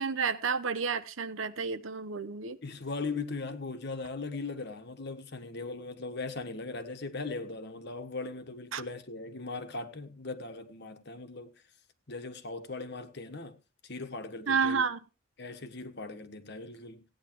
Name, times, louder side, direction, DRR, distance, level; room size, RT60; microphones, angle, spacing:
voice 1, 0.0-2.6 8.7-8.8 14.5-15.0, right 5 dB, 80° right, 1.0 m, -30 dB
voice 2, 2.6-11.5 12.1-13.6 13.8-14.8 15.4-17.0, left 3 dB, 55° left, 1.4 m, -39 dB
17.0 x 9.8 x 3.1 m
head